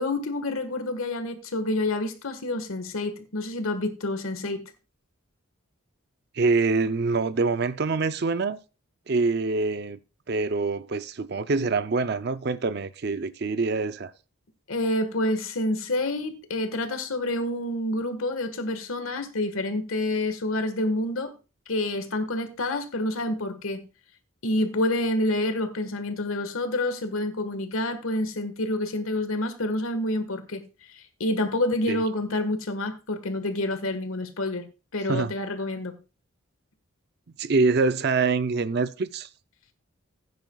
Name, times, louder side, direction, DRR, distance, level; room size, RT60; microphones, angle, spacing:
voice 1, 0.0-4.6 14.7-21.3 21.7-23.8 24.4-30.6 30.9-34.7 34.9-36.0, left 1 dB, 85° left, 1.5 m, -28 dB
voice 2, 6.3-8.6 9.1-10.0 10.3-14.1 31.9-32.0 35.1-35.3 37.4-39.3, right 4 dB, 50° right, 0.5 m, -25 dB
15.5 x 9.4 x 2.3 m
head